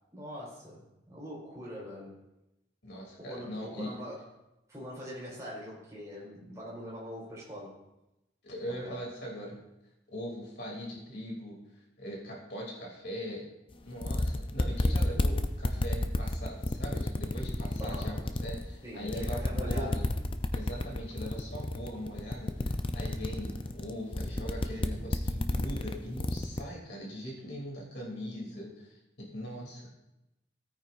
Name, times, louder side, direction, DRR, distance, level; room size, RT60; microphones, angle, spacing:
voice 1, 0.1-2.2 3.2-4.3 4.7-7.8 8.8-9.0 17.8-18.2 18.8-20.0, equal, 15° right, -6 dB, 4.4 m, -43 dB
voice 2, 2.8-3.9 8.4-9.6 10.1-11.6 12.0-13.4 13.8-20.0 20.5-29.9, equal, 60° left, -3 dB, 2.9 m, -40 dB
sound 1, 13.7-13.8 14.0-18.6 19.0-26.6, left 1 dB, 30° left, 0.5 m, -30 dB
16.5 x 9.2 x 2.6 m, 0.93 s
head